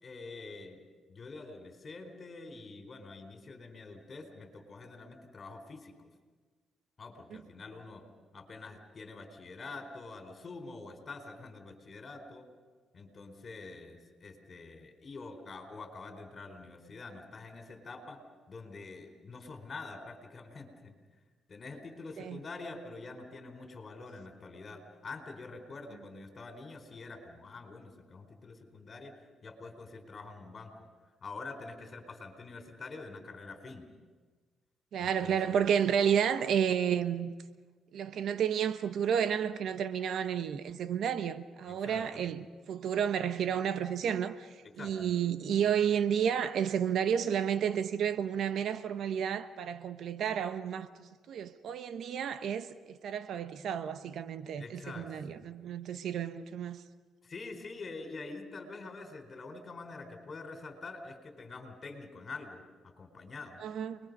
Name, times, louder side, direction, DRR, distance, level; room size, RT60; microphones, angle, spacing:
voice 1, 0.0-0.8 1.1-6.1 7.0-8.1 8.3-12.5 12.9-18.2 18.5-20.9 21.5-29.2 29.4-30.9 31.2-33.9 35.0-35.6 41.7-42.3 44.6-45.1 54.6-55.5 57.2-63.6, left 3 dB, 40° left, 4.3 m, -46 dB
voice 2, 34.9-37.3 37.9-44.5 44.7-56.8 63.6-64.0, right 8 dB, 70° right, 1.1 m, -31 dB
29.0 x 21.5 x 5.5 m
cardioid pair, 90°, 0 cm